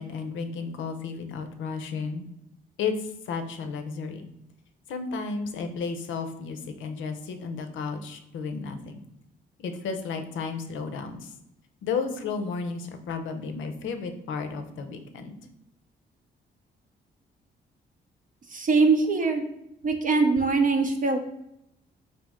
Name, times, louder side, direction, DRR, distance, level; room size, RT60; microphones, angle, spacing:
voice 1, 0.0-2.2 2.8-4.3 4.9-9.0 9.6-11.3 11.8-15.4, left 5 dB, 85° left, 7 dB, 0.6 m, -33 dB
voice 2, 18.5-19.4 19.8-21.2, right 4 dB, 45° right, 4 dB, 0.5 m, -22 dB
4.1 x 2.7 x 3.5 m, 0.80 s
cardioid pair, 75°, 19 cm